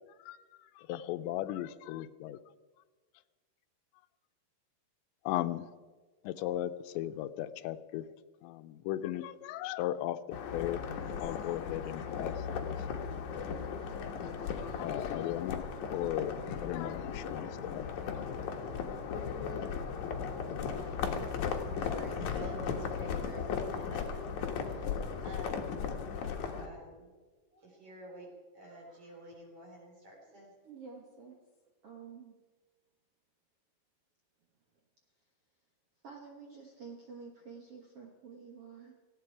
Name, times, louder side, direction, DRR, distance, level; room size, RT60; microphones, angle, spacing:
voice 1, 0.8-2.4 5.3-5.7 6.2-8.1 8.4-10.8 11.2-12.8 13.1-13.5 14.5-15.6 15.9-18.4, left 13 dB, 85° left, 13 dB, 2.9 m, -37 dB
sound 1, 10.3-26.7, left 6 dB, 60° left, 2.2 m, -36 dB
voice 2, 20.6-21.2 21.7-23.5 23.8-24.5 24.7-25.8 26.1-26.3 26.5-27.1 27.5-28.3 28.5-30.5, right 1 dB, 35° right, -1 dB, 4.3 m, -50 dB
voice 3, 30.6-31.4 31.8-32.4 36.0-38.9, right 5 dB, 75° right, 1 dB, 1.3 m, -49 dB
18.5 x 16.0 x 4.7 m, 1.4 s
omnidirectional pair, 5.0 m